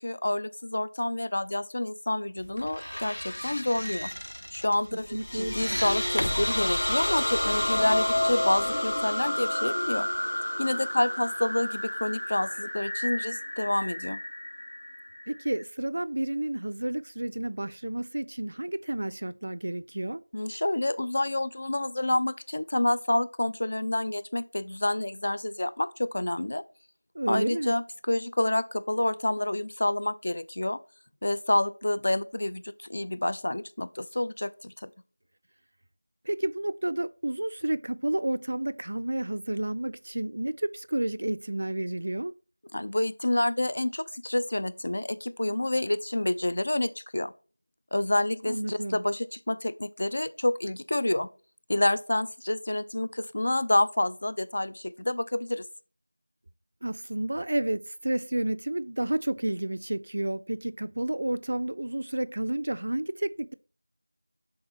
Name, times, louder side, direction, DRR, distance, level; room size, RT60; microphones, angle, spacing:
voice 1, 0.0-4.1 4.5-10.1 10.6-14.2 20.3-26.6 27.3-30.8 31.2-34.9 42.7-47.3 47.9-51.3 51.7-55.7, left 1 dB, 40° left, 0.5 m, -28 dB
sound 1, 2.4-8.9, equal, 85° left, 0.8 m, -37 dB
voice 2, 4.9-5.5 15.3-20.2 27.1-27.7 36.3-42.3 48.5-49.0 56.8-63.5, right 1 dB, 45° right, 0.4 m, -30 dB
sound 2, 5.0-15.6, left 1 dB, 60° left, 1.8 m, -30 dB
6.7 x 3.8 x 5.6 m
figure-of-eight pair, 175°, 0 cm